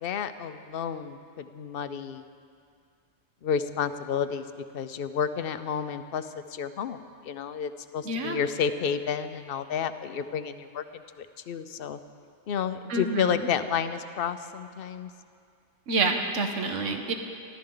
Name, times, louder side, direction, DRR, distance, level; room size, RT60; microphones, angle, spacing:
voice 1, 0.0-2.2 3.4-4.5 4.7-12.0 12.5-15.1, left 7 dB, 55° left, 10 dB, 0.8 m, -31 dB
voice 2, 8.0-8.4 12.9-13.5 15.9-17.1, right 3 dB, 75° right, 4 dB, 1.5 m, -28 dB
27.0 x 12.5 x 3.9 m, 2.3 s
omnidirectional pair, 1.3 m